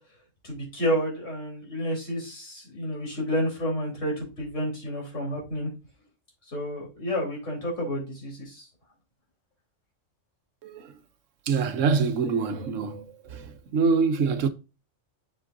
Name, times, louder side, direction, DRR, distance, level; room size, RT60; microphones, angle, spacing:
voice 1, 0.4-5.7 6.5-8.7, equal, 75° left, 4.4 m, -30 dB
voice 2, 10.6-11.0 11.5-14.5, right 5 dB, 80° right, 1.2 m, -25 dB
7.7 x 7.4 x 2.7 m
omnidirectional pair, 1.3 m